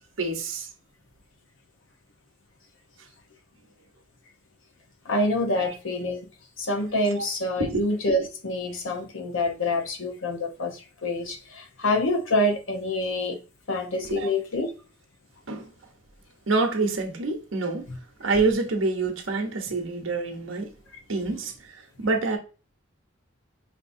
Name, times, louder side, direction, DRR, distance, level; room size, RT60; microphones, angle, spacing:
voice 1, 0.2-0.7 5.6-5.7 7.6-7.8 14.1-14.3 15.5-15.7 16.5-17.9 18.2-20.7 21.1-21.5 22.0-22.4, right 3 dB, 90° right, 1.0 m, -26 dB
voice 2, 5.1-6.3 6.6-13.4 13.7-14.7 17.9-18.0, left 1 dB, 80° left, 0.9 m, -26 dB
5.2 x 2.8 x 2.6 m
head